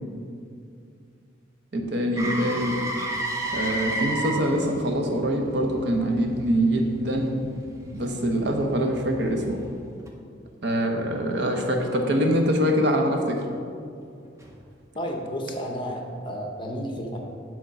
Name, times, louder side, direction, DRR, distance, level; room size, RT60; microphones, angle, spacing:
voice 1, 1.7-2.8 3.5-7.4 7.9-9.6 10.6-13.4, equal, 60° right, 3 dB, 0.8 m, -24 dB
Motor vehicle (road), 2.2-10.1 14.4-14.5, right 1 dB, 15° right, 0.7 m, -34 dB
voice 2, 15.0-17.2, equal, 25° left, 1 dB, 0.8 m, -32 dB
7.9 x 3.7 x 5.7 m, 2.3 s
head